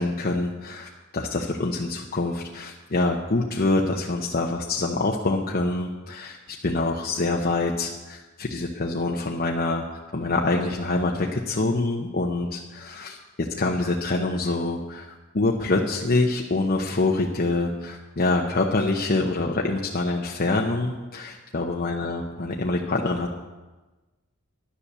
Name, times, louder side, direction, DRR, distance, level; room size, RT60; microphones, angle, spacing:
voice 1, 0.0-9.8 10.1-23.3, left 2 dB, 45° left, 0 dB, 0.9 m, -25 dB
11.5 x 10.0 x 6.9 m, 1.2 s
head